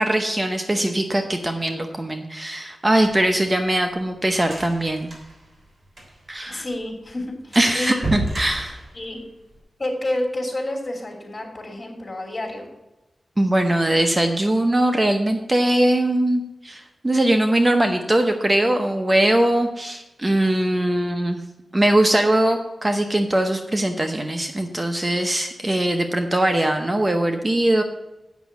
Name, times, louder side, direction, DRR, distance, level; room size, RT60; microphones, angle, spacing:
voice 1, 0.0-5.1 6.3-6.6 7.6-8.8 13.4-21.4 21.7-27.8, right 1 dB, 20° right, 5 dB, 0.8 m, -21 dB
sound 1, 3.0-6.4 6.7-6.8 7.1-7.2 7.5-9.6, right 2 dB, 40° right, 3.5 m, -32 dB
voice 2, 6.5-8.0 8.9-9.2 9.8-12.7, left 1 dB, 35° left, 1 dB, 3.0 m, -29 dB
8.2 x 6.2 x 8.1 m, 0.99 s
wide cardioid pair, 100°, 0 cm